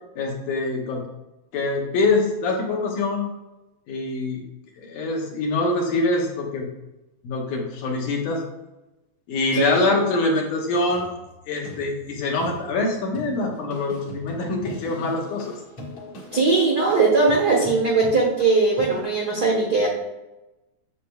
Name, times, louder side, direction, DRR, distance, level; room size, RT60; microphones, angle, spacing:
voice 1, 0.2-1.0 1.5-3.3 3.9-4.4 4.8-6.7 7.2-8.4 9.3-11.1 11.5-15.6, left 2 dB, 75° left, -1 dB, 2.7 m, -24 dB
voice 2, 9.5-9.9 16.3-19.9, right 3 dB, 85° right, -2 dB, 0.8 m, -20 dB
sound 1, 10.8-19.0, left 1 dB, 55° left, 2.4 m, -41 dB
8.5 x 7.0 x 2.3 m, 0.98 s
omnidirectional pair, 3.7 m